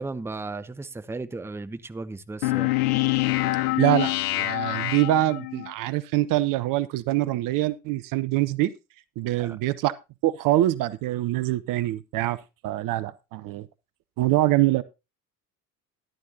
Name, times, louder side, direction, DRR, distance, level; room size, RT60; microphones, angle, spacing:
voice 1, 0.0-2.7 9.4-9.6, right 3 dB, 5° right, 0.7 m, -35 dB
sound 1, 2.4-5.7, left 19 dB, 65° left, 0.6 m, -25 dB
voice 2, 3.8-8.7 9.2-9.9 10.2-12.4 12.6-13.7 14.2-14.8, right 15 dB, 45° right, 0.6 m, -24 dB
12.5 x 11.0 x 2.8 m
figure-of-eight pair, 55°, 47 cm